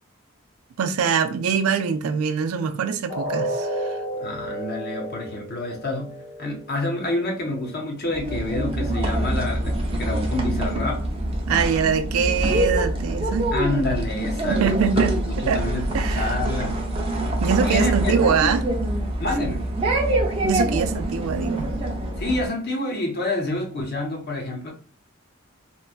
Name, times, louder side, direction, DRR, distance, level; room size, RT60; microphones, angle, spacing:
voice 1, 0.8-4.0 11.5-13.5 14.5-15.2 15.5-15.6 15.9-16.4 17.4-18.7 20.4-21.7, right 6 dB, 85° right, 0.4 m, -23 dB
sound 1, 3.1-9.1 9.5-9.6 10.1-10.2, right 1 dB, 75° left, 1.1 m, -33 dB
voice 2, 4.2-11.1 13.5-15.8 16.1-16.8 17.6-18.3 19.2-19.7 22.2-24.7, left 2 dB, 45° left, 0.7 m, -28 dB
sound 2, 8.1-22.5, right 1 dB, 25° right, 0.5 m, -25 dB
3.1 x 2.2 x 2.4 m
head